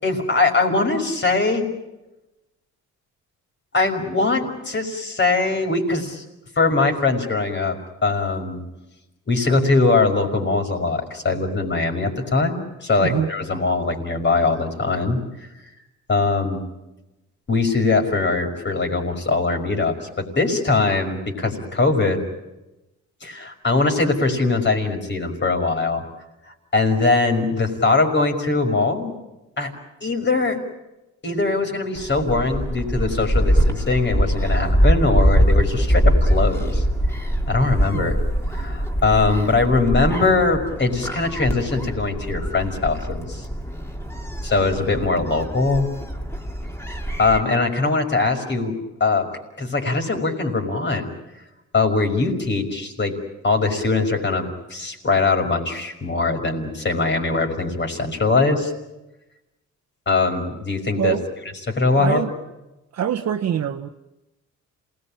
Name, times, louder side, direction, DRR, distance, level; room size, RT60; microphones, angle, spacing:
voice 1, 0.0-1.7 3.7-6.2 6.6-8.6 9.3-15.2 16.1-16.6 17.5-22.2 23.2-26.1 26.7-29.1 29.6-29.7 30.0-30.6 31.2-36.8 37.5-38.2 38.5-43.5 44.4-45.9 47.2-48.7 49.0-49.3 49.6-51.1 51.7-53.2 53.4-58.7 60.1-61.2 61.7-62.2, left 3 dB, 35° left, 5 dB, 5.6 m, -21 dB
Gull seagull, 32.0-47.4, equal, 10° left, 2.8 m, -23 dB
voice 2, 61.9-62.3 62.9-63.9, right 9 dB, 55° right, 3 dB, 1.2 m, -24 dB
27.5 x 19.5 x 8.8 m, 0.98 s
cardioid pair, 90°, 30 cm